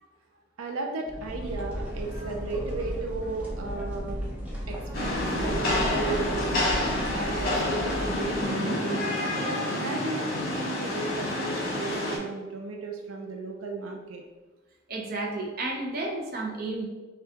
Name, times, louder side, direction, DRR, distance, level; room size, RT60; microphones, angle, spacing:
voice 1, 0.6-4.2 4.7-6.7 7.1-9.1 9.4-14.2, right 3 dB, 85° right, 2 dB, 0.5 m, -35 dB
sound 1, 1.1-8.4, equal, 10° right, 0.7 m, -35 dB
Rain, 4.9-12.2, left 1 dB, 50° left, 1.2 m, -28 dB
voice 2, 14.9-16.9, right 2 dB, 45° right, 0 dB, 0.6 m, -32 dB
5.6 x 2.3 x 2.8 m, 1.2 s
head